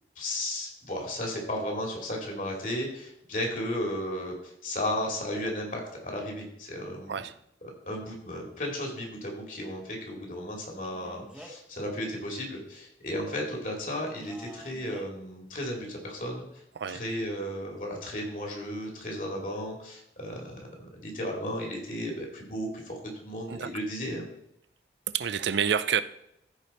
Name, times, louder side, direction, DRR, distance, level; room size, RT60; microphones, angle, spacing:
voice 1, 0.2-7.2 7.9-16.6 16.9-24.3, left 1 dB, 45° left, 0 dB, 2.6 m, -34 dB
Male speech man speaking, 10.8-11.7 14.2-15.1, right 1 dB, 5° right, 1.1 m, -48 dB
voice 2, 25.1-26.0, right 7 dB, 80° right, 14 dB, 0.5 m, -28 dB
14.5 x 5.1 x 4.3 m, 0.77 s
head